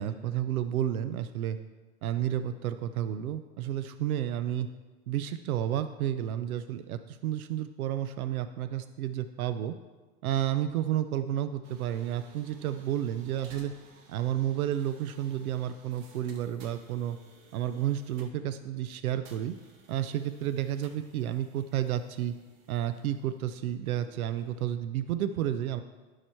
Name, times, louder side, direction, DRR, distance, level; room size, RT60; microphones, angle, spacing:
voice 1, 0.0-1.6 2.0-4.7 5.1-9.7 10.2-13.7 14.1-17.2 17.5-19.6 19.9-22.3 22.7-25.8, right 11 dB, 90° right, 11 dB, 0.5 m, -31 dB
sound 1, 11.6-24.7, right 4 dB, 50° right, 1.5 m, -57 dB
11.0 x 4.9 x 4.4 m, 1.3 s
hypercardioid pair, 120°, 42 cm